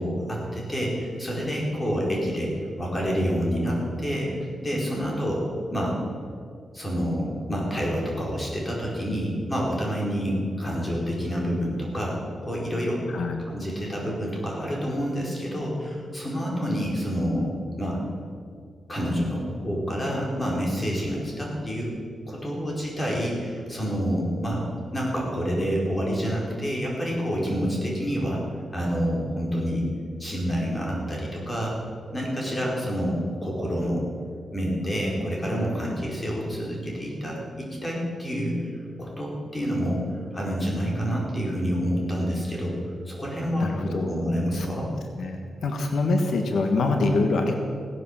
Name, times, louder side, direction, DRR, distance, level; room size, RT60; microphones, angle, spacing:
voice 1, 0.0-5.4 5.7-6.0 6.7-13.0 13.5-17.5 17.8-18.0 18.9-21.9 22.3-24.6 24.9-28.4 28.7-29.9 30.2-31.8 32.1-34.0 34.5-38.7 39.0-40.1 40.3-42.8 43.1-44.9, equal, 20° left, -3 dB, 4.6 m, -28 dB
voice 2, 43.6-44.7 45.2-47.5, left 3 dB, 85° left, 4 dB, 1.5 m, -25 dB
17.0 x 10.5 x 7.4 m, 2.1 s
wide cardioid pair, 130°, 0 cm